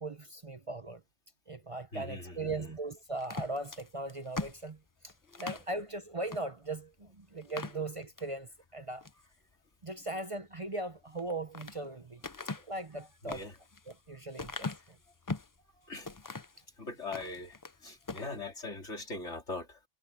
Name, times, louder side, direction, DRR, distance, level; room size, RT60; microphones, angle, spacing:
voice 1, 0.0-1.0 1.5-4.8 5.0-5.1 5.4-9.1 9.8-12.2 12.7-13.4 13.9-14.7, right 2 dB, 30° right, 0.8 m, -39 dB
voice 2, 1.9-2.8 5.3-5.8 7.5-7.6 12.4-12.6 13.2-13.6 15.8-16.1 16.8-17.6 17.8-19.9, left 3 dB, 80° left, 3.8 m, -42 dB
sound 1, 3.2-5.7 6.3-6.5 6.8-6.9 7.4-8.3 8.8-9.3 11.1-11.8 12.2-15.6 16.0-16.6 17.0-17.8 18.0-18.3, left 3 dB, 25° left, 0.5 m, -41 dB
omnidirectional pair, 1.2 m